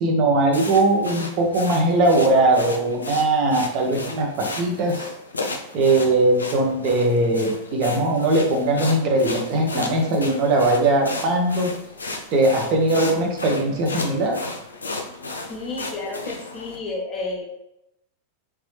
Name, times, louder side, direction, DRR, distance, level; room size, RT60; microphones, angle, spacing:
voice 1, 0.0-5.0 5.7-11.7 12.3-14.4, right 2 dB, 40° right, 1 dB, 0.9 m, -20 dB
sound 1, 0.5-16.8, left 2 dB, 75° left, 0.5 m, -34 dB
voice 2, 15.5-17.4, left 3 dB, 20° left, -3 dB, 1.1 m, -31 dB
3.3 x 3.1 x 3.2 m, 0.85 s
figure-of-eight pair, 90°, 0 cm